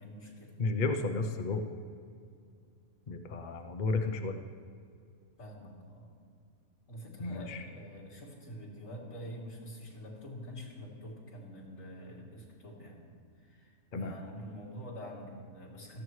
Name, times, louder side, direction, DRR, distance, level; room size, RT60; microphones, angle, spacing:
voice 1, 0.0-0.5 5.4-6.1 6.9-13.0 13.4-16.0, equal, 65° left, -5 dB, 3.3 m, -46 dB
voice 2, 0.6-1.7 3.1-4.4 7.2-7.6 13.9-14.1, left 3 dB, 45° left, 6 dB, 0.6 m, -32 dB
17.5 x 14.0 x 3.2 m, 2.3 s
omnidirectional pair, 1.5 m